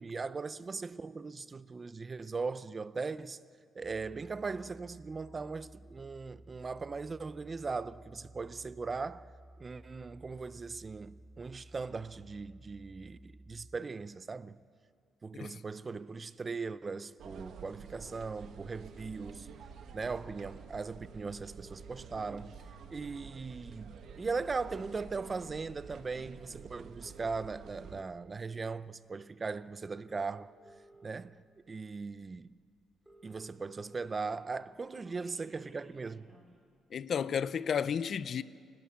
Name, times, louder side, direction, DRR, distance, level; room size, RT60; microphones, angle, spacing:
voice 1, 0.0-3.4 3.8-9.3 9.6-14.6 15.2-19.5 19.9-22.6 22.9-30.5 31.0-31.4 31.7-32.5 33.2-36.3, right 4 dB, 25° right, 0.6 m, -39 dB
sound 1, 3.8-13.8, right 1 dB, 10° left, 2.4 m, -55 dB
sound 2, 17.2-28.0, right 6 dB, 65° right, 1.4 m, -50 dB
sound 3, 18.1-19.1 20.3-20.4 20.6-20.7 20.9-22.3 22.8-23.1 23.9-25.1 25.8-26.0 26.9-28.1 29.3-29.4 29.9-31.1 31.7-31.8 32.1-32.2 32.5-32.6 32.8-34.1 34.4-36.5, right 2 dB, 10° right, 5.5 m, -58 dB
voice 2, 36.9-38.4, left 7 dB, 50° left, 0.6 m, -32 dB
30.0 x 12.0 x 8.6 m
cardioid pair, 125°, 0 cm